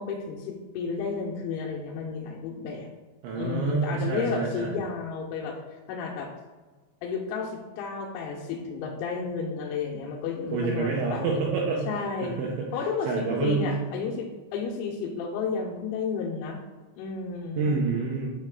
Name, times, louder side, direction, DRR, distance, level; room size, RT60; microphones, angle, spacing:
voice 1, 0.0-2.9 3.4-5.6 5.9-6.3 7.0-11.4 11.9-12.4 12.7-16.6 17.0-17.7, left 5 dB, 90° left, -2 dB, 3.4 m, -32 dB
voice 2, 3.2-4.8 10.5-11.9 12.2-12.7 13.1-13.8 17.6-18.3, right 4 dB, 85° right, -3 dB, 2.7 m, -27 dB
9.0 x 3.2 x 3.5 m, 1.3 s
omnidirectional pair, 6.0 m